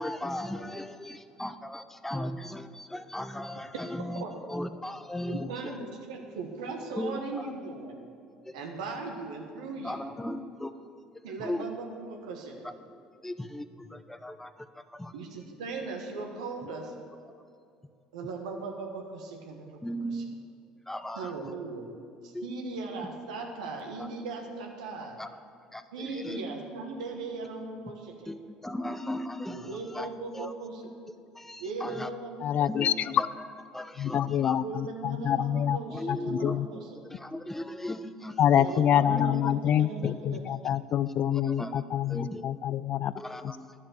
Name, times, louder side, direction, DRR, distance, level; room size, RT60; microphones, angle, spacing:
voice 1, 0.0-5.7 6.9-7.5 8.4-8.5 9.8-10.7 11.4-11.6 12.6-12.7 13.2-15.1 16.6-16.7 19.8-20.4 20.9-21.5 22.3-22.5 24.0-24.1 25.2-25.3 25.7-26.4 28.3-30.5 31.3-32.1 32.6-33.3 33.7-34.6 35.9-36.6 37.1-38.4 39.1-39.6 40.7-40.8 41.3-41.8 42.1-42.4 43.2-43.7, left 1 dB, 10° left, 10 dB, 0.7 m, -37 dB
voice 2, 5.2-8.0 8.5-10.0 11.2-12.7 15.1-16.9 18.1-19.8 20.1-20.2 21.2-21.9 22.2-25.1 25.9-28.3 29.5-30.9 31.5-32.8 34.6-36.8 38.6-40.6, right 3 dB, 80° right, 2 dB, 1.3 m, -38 dB
voice 3, 32.4-33.2 34.0-35.8 36.1-36.7 38.4-43.1 43.4-43.5, left 10 dB, 50° left, 17 dB, 0.4 m, -26 dB
11.0 x 7.3 x 7.7 m, 2.4 s
hypercardioid pair, 65°, 3 cm